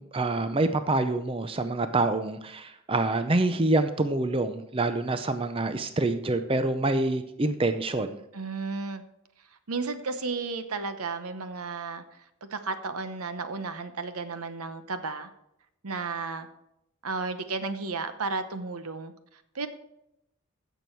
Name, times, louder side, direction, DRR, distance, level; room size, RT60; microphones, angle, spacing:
voice 1, 0.0-8.2, right 2 dB, 25° right, 9 dB, 0.5 m, -26 dB
voice 2, 8.3-9.0 9.7-12.0 12.4-15.3 15.8-16.5 17.0-19.1 19.5-19.7, right 4 dB, 85° right, 10 dB, 0.9 m, -33 dB
15.5 x 7.0 x 4.5 m, 0.82 s
head